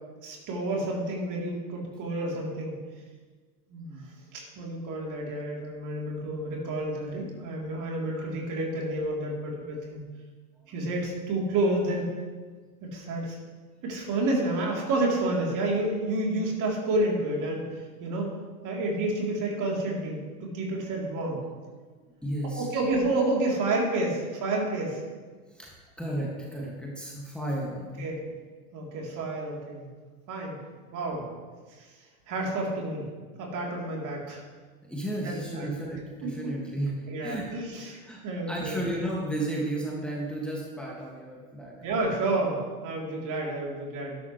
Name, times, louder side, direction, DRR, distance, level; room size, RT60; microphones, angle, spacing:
voice 1, 0.2-2.8 3.7-4.0 4.3-10.0 10.7-12.1 12.8-13.4 13.8-18.3 18.6-21.4 22.6-25.0 28.0-28.2 28.7-29.9 30.3-30.6 30.9-31.3 31.8-31.9 32.3-33.0 33.4-34.4 35.2-35.7 36.2-36.5 37.1-38.8 41.8-44.2, right 2 dB, 40° right, -2 dB, 3.6 m, -30 dB
voice 2, 21.8-22.7 25.4-28.1 34.8-36.9 37.2-37.6 38.0-38.2 38.5-41.8, right 1 dB, ahead, -4 dB, 2.1 m, -33 dB
12.5 x 12.0 x 3.3 m, 1.4 s
hypercardioid pair, 95°, 46 cm